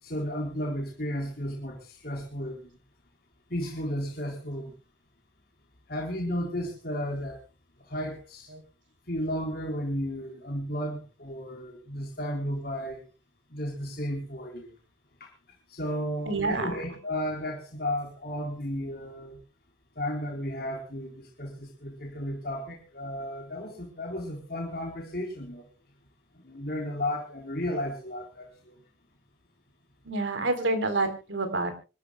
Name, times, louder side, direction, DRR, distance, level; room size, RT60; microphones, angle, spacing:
voice 1, 0.0-2.7 3.5-4.7 5.9-7.4 7.9-8.5 9.1-13.1 13.5-14.7 15.2-15.3 15.7-19.4 20.0-25.6 26.4-28.8, equal, 50° left, 0 dB, 3.8 m, -33 dB
voice 2, 16.3-16.8 30.0-31.7, right 2 dB, 85° right, 8 dB, 3.7 m, -28 dB
25.5 x 13.5 x 2.2 m, 0.32 s
head